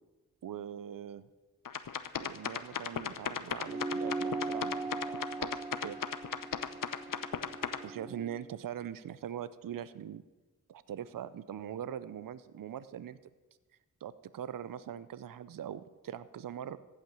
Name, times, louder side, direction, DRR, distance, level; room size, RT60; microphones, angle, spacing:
voice 1, 0.4-1.2 2.2-6.0 7.8-10.2 10.7-13.2 14.0-16.8, right 9 dB, 65° right, 16 dB, 0.6 m, -42 dB
sound 1, 1.7-7.8, left 8 dB, 65° left, 0.8 m, -36 dB
sound 2, 3.6-8.4, right 3 dB, 10° right, 0.3 m, -39 dB
15.0 x 5.8 x 8.9 m, 1.2 s
cardioid pair, 45°, 35 cm